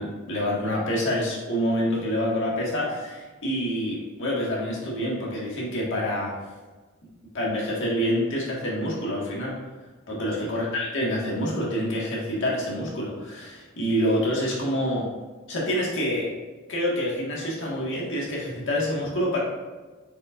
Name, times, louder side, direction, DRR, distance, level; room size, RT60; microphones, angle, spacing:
voice 1, 0.0-6.4 7.3-9.5 10.1-15.1 15.5-16.3 16.7-19.4, equal, 60° left, -4 dB, 1.7 m, -27 dB
8.1 x 5.4 x 2.5 m, 1.3 s
head